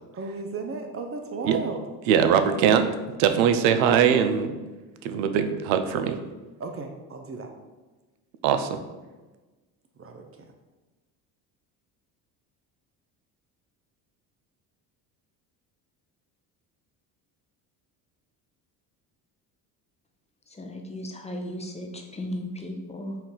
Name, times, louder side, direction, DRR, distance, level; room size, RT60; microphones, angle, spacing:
voice 1, 0.1-1.9 6.6-7.5 10.0-10.5, right 4 dB, 30° right, 4 dB, 0.5 m, -35 dB
voice 2, 2.1-2.9 3.2-4.5 5.0-6.2 8.4-8.8, right 8 dB, 80° right, 8 dB, 0.6 m, -21 dB
voice 3, 20.5-23.2, left 1 dB, 15° left, 2 dB, 0.6 m, -35 dB
4.3 x 2.4 x 3.8 m, 1.2 s
supercardioid pair, 70°, 48 cm